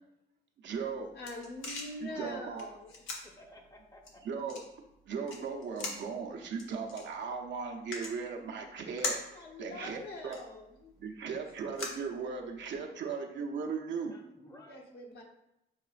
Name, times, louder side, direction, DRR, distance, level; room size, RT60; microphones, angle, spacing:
voice 1, 0.6-1.1 2.0-2.7 4.2-4.6 5.1-10.4 11.0-14.1, right 5 dB, 65° right, 3 dB, 0.7 m, -37 dB
sound 1, 0.7-12.8, left 3 dB, 75° left, 1.0 m, -44 dB
voice 2, 1.1-2.8 9.3-10.9 14.7-15.2, left 1 dB, 55° left, -1 dB, 1.2 m, -44 dB
voice 3, 3.2-4.3 14.1-14.9, left 1 dB, 20° left, 2 dB, 0.9 m, -55 dB
6.5 x 3.0 x 2.4 m, 0.86 s
cardioid pair, 90°, 20 cm